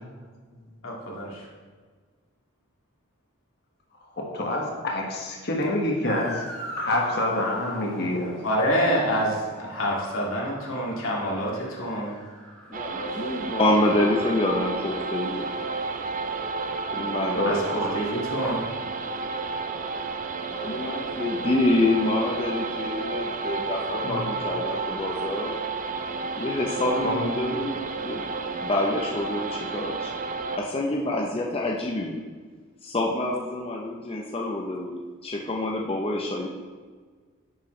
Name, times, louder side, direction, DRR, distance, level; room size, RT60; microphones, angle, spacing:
voice 1, 0.8-1.4 8.4-12.2 17.4-18.6, equal, 80° left, -3 dB, 2.2 m, -27 dB
voice 2, 4.2-6.4 6.8-8.3 17.4-17.5 24.0-24.2 27.0-27.3, left 1 dB, 50° left, -1 dB, 1.5 m, -27 dB
Motor vehicle (road) / Siren, 6.0-18.6, equal, 5° left, 1.8 m, -43 dB
voice 3, 12.7-15.8 16.9-18.0 20.5-25.6 26.4-28.2 28.5-30.1 30.6-32.2 32.8-36.5, left 1 dB, 25° left, -1 dB, 0.7 m, -27 dB
sound 1, 12.7-30.6, right 4 dB, 40° right, 0.5 m, -31 dB
10.5 x 7.2 x 3.2 m, 1.5 s
head